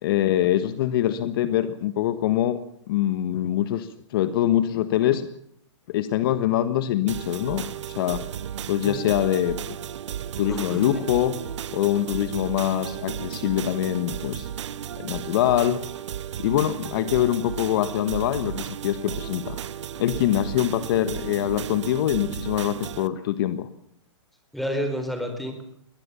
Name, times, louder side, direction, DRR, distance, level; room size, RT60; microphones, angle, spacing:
voice 1, 0.0-5.3 5.9-8.2 8.7-9.6 10.4-11.3 11.7-14.5 15.0-15.8 16.4-19.6 20.0-23.7, left 12 dB, 45° left, 12 dB, 1.5 m, -24 dB
sound 1, 7.1-23.1, right 9 dB, 70° right, 1.4 m, -34 dB
voice 2, 10.5-10.9 24.5-25.6, equal, ahead, 6 dB, 4.2 m, -29 dB
22.5 x 19.0 x 7.0 m, 0.74 s
hypercardioid pair, 150°, 16 cm